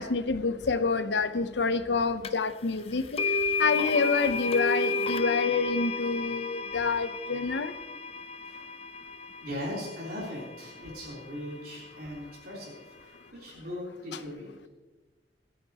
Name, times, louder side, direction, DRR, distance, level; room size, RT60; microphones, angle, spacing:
voice 1, 0.0-3.2 3.6-7.7, left 4 dB, 80° left, 11 dB, 0.8 m, -27 dB
sound 1, 2.2-2.3 3.2-11.2, left 3 dB, 35° left, 0.4 m, -32 dB
voice 2, 9.4-14.5, left 1 dB, 55° right, -5 dB, 3.6 m, -39 dB
25.5 x 8.5 x 2.9 m, 1.2 s
head